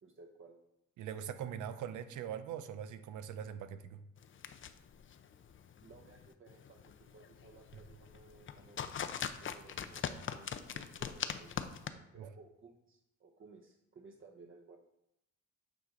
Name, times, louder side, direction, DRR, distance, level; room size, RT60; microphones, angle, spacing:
voice 1, 0.0-0.6 5.8-11.7 11.9-14.8, right 4 dB, 45° right, 1 dB, 1.0 m, -58 dB
voice 2, 1.0-4.0 12.2-12.3, right 9 dB, 85° right, 11 dB, 0.7 m, -42 dB
sound 1, 4.2-11.9, left 7 dB, 40° left, 0.6 m, -43 dB
8.5 x 5.0 x 3.8 m, 0.82 s
cardioid pair, 90°, 30 cm